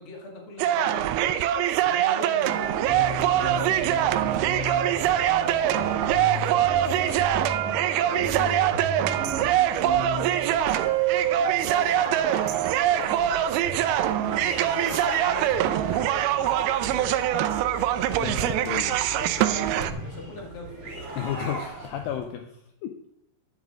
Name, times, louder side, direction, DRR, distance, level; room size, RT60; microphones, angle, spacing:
voice 1, 0.0-4.5 5.6-6.6 8.0-10.7 11.4-12.5 12.9-13.8 14.1-17.7 18.6-20.9, left 2 dB, 40° left, 1 dB, 2.2 m, -42 dB
sound 1, 0.6-19.9, right 12 dB, 80° right, 2.2 m, -24 dB
sound 2, 2.7-22.2, right 1 dB, 25° right, 1.9 m, -37 dB
sound 3, 8.1-21.5, left 2 dB, 45° right, 1.4 m, -47 dB
voice 2, 8.2-8.7 18.2-19.0 21.2-22.9, left 9 dB, 80° left, 5 dB, 2.0 m, -33 dB
10.5 x 8.9 x 3.6 m, 0.78 s
omnidirectional pair, 4.9 m